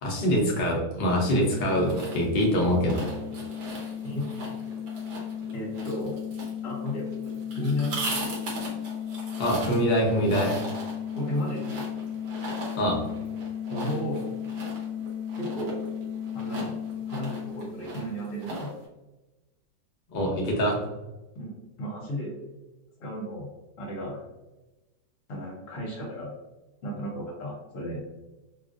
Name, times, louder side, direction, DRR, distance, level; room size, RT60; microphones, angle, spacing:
voice 1, 0.0-3.0 9.4-10.5 12.8-13.0 20.1-20.8, equal, 85° left, -2 dB, 0.4 m, -24 dB
sound 1, 0.8-18.3, left 9 dB, 85° right, 1.3 m, -36 dB
sound 2, 1.5-18.9, right 2 dB, 60° right, 1.2 m, -39 dB
voice 2, 5.5-6.1 6.6-7.1 7.5-8.0 11.2-11.7 13.7-14.2 15.4-15.8 16.3-16.7 17.1-18.7 21.3-22.3 23.0-23.5 23.8-24.2 25.3-26.3 26.8-28.0, equal, 55° left, -3 dB, 1.2 m, -33 dB
3.1 x 2.4 x 2.4 m, 1.1 s
omnidirectional pair, 1.9 m